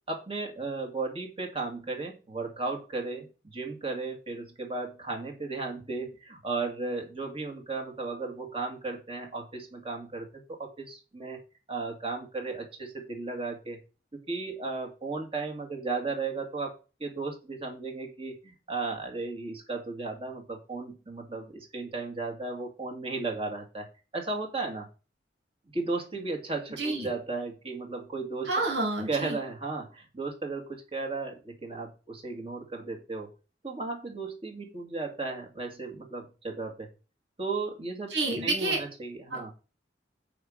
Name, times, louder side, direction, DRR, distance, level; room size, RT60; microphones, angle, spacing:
voice 1, 0.1-11.4 11.7-13.8 14.1-23.9 24.1-24.9 25.7-28.8 29.1-33.3 33.6-36.9 37.4-38.2 38.4-39.5, right 3 dB, 35° right, 2 dB, 2.3 m, -35 dB
voice 2, 28.5-29.4 38.1-38.8 39.3-39.5, right 2 dB, 85° right, 0 dB, 3.1 m, -29 dB
8.4 x 5.1 x 5.7 m, 0.33 s
head